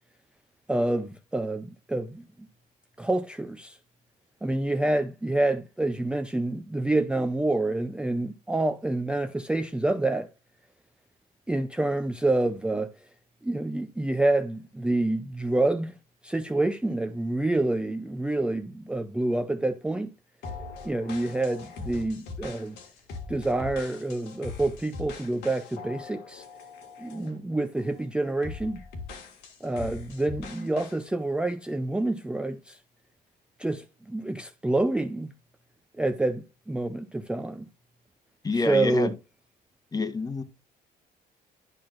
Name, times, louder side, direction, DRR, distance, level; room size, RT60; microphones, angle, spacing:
voice 1, 0.7-2.2 3.0-3.8 4.4-10.3 11.5-12.9 13.4-15.9 16.2-20.1 20.8-22.8 23.3-26.4 27.0-28.8 29.6-32.8 33.6-35.3 36.0-37.7 38.5-39.1, right 2 dB, 5° right, 0.5 m, -27 dB
sound 1, 20.4-27.4 27.8-28.0 28.4-31.0, left 4 dB, 85° left, 1.9 m, -41 dB
voice 2, 38.4-39.1 39.9-40.4, left 3 dB, 20° left, 1.1 m, -28 dB
10.5 x 5.8 x 2.5 m
cardioid pair, 110°, 17 cm